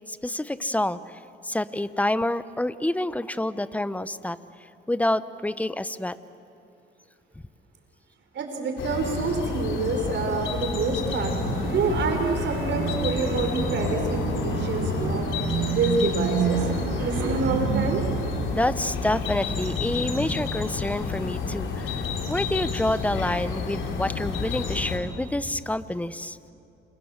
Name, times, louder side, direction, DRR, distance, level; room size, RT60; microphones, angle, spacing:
voice 1, 0.1-1.0 1.4-4.4 4.9-6.2 18.5-26.4, left 1 dB, 5° left, 14 dB, 0.9 m, -28 dB
voice 2, 8.3-15.3 15.7-16.7 17.0-18.0, right 4 dB, 65° right, 4 dB, 5.2 m, -27 dB
sound 1, 8.8-25.0, left 4 dB, 75° left, 3.9 m, -30 dB
sound 2, 11.2-18.8, right 9 dB, 85° right, 1.4 m, -31 dB
29.5 x 26.5 x 7.5 m, 2.8 s
cardioid pair, 90°, 20 cm